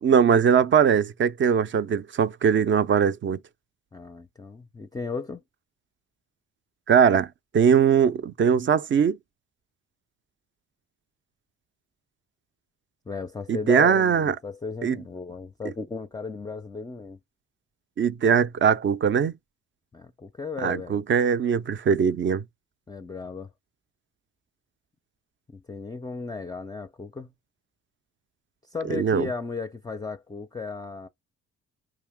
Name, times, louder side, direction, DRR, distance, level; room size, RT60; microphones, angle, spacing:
voice 1, 0.0-3.4 6.9-9.2 13.5-14.4 14.8-15.0 18.0-19.3 20.6-22.4 28.9-29.3, right 7 dB, 40° right, 0.5 m, -21 dB
voice 2, 3.9-5.4 13.1-17.2 19.9-21.0 22.9-23.5 25.5-27.3 28.6-31.1, left 4 dB, 15° left, 0.5 m, -35 dB
4.8 x 2.9 x 3.4 m
cardioid pair, 90°, 30 cm